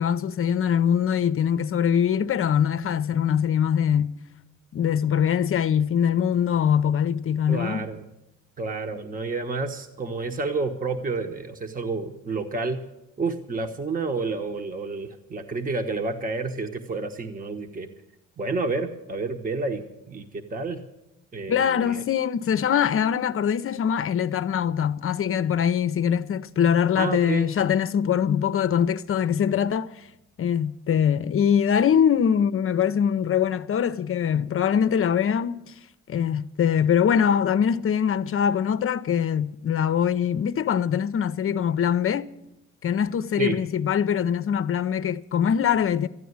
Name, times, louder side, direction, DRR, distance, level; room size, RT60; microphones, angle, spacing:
voice 1, 0.0-4.1 4.7-7.9 21.5-30.1 30.4-35.6 36.1-42.3 42.8-46.1, left 8 dB, 45° left, 0.6 m, -23 dB
voice 2, 7.5-8.1 8.6-12.8 13.2-17.9 18.4-20.8 21.3-22.0 27.0-27.5 43.4-43.6, right 3 dB, 30° right, 1.1 m, -30 dB
14.0 x 9.2 x 9.5 m
cardioid pair, 90°, 30 cm